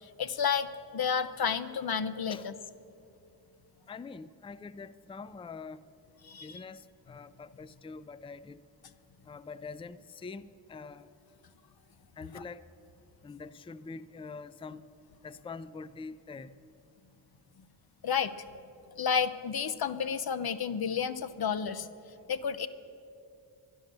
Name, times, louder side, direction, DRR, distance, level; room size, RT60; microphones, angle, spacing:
voice 1, 0.0-2.5 6.2-6.6 12.3-12.4 18.0-18.3 19.0-21.9 22.3-22.7, left 7 dB, 55° left, 14 dB, 0.7 m, -31 dB
voice 2, 3.9-5.8 6.4-8.7 9.3-11.1 12.2-12.6 13.2-14.8 15.2-16.6, left 4 dB, 15° left, 16 dB, 0.3 m, -44 dB
11.5 x 11.0 x 6.7 m, 2.6 s
cardioid pair, 60°, 44 cm